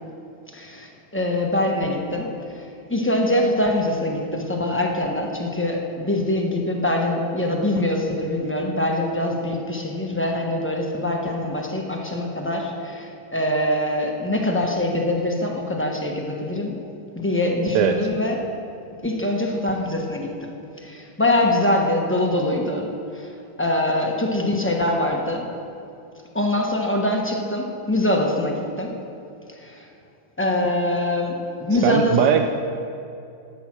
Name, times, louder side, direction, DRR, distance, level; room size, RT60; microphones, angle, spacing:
voice 1, 0.5-16.8 17.1-18.4 19.0-20.5 20.8-23.3 23.6-25.5 26.3-28.9 29.6-29.9 30.4-32.2, left 1 dB, 10° left, 1 dB, 0.6 m, -24 dB
voice 2, 17.7-18.1 31.8-32.5, right 9 dB, 70° right, 5 dB, 1.1 m, -19 dB
13.0 x 8.6 x 6.1 m, 2.6 s
omnidirectional pair, 2.2 m